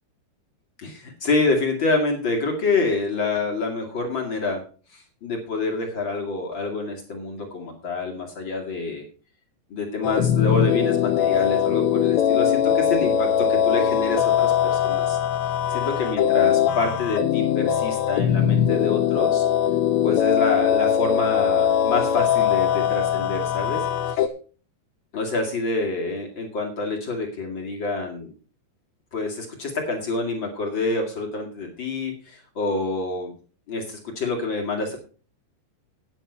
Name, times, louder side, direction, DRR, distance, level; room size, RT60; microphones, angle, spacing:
voice 1, 0.8-4.6 4.9-9.0 9.7-15.2 15.7-19.4 20.0-24.3 25.1-28.3 29.1-33.3 33.7-35.0, left 3 dB, 55° left, 1 dB, 1.3 m, -27 dB
sound 1, 10.0-24.3, left 9 dB, 80° left, 2.8 m, -21 dB
9.5 x 9.0 x 5.5 m, 0.39 s
omnidirectional pair, 5.4 m